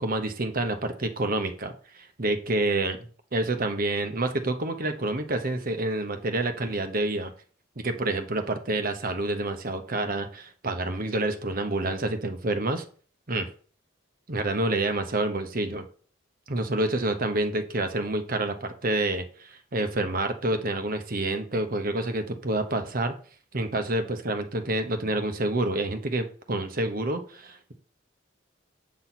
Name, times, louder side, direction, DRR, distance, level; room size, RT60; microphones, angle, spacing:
voice 1, 0.0-3.0 3.3-7.3 7.8-12.8 13.3-13.5 14.3-15.9 16.5-23.1 23.5-27.7, right 2 dB, 50° right, 8 dB, 1.0 m, -28 dB
8.6 x 6.0 x 4.3 m, 0.43 s
head